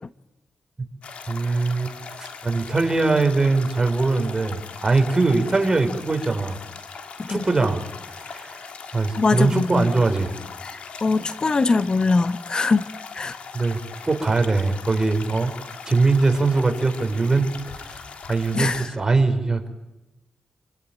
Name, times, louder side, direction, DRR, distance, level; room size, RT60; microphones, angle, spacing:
sound 1, 1.0-18.9, left 5 dB, 75° left, 3.3 m, -39 dB
voice 1, 1.3-1.9 2.2-6.6 7.3-8.7 8.9-10.4 13.5-13.8 14.0-15.5 15.9-18.0 18.3-19.7, right 3 dB, 30° right, 5 dB, 5.6 m, -22 dB
voice 2, 9.2-9.9 10.6-12.8 13.1-13.3 18.5-18.9, left 3 dB, 45° left, 12 dB, 1.2 m, -22 dB
28.5 x 21.5 x 9.2 m, 0.98 s
cardioid pair, 70°, 2 cm